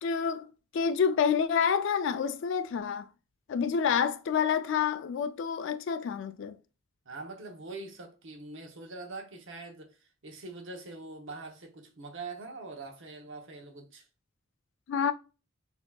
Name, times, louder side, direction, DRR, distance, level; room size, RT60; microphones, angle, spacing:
voice 1, 0.0-0.5 0.7-3.0 3.5-6.5 14.9-15.1, left 7 dB, 60° left, 0.3 m, -28 dB
voice 2, 7.1-14.1, right 3 dB, 65° right, 0.8 m, -43 dB
4.3 x 2.8 x 2.3 m
head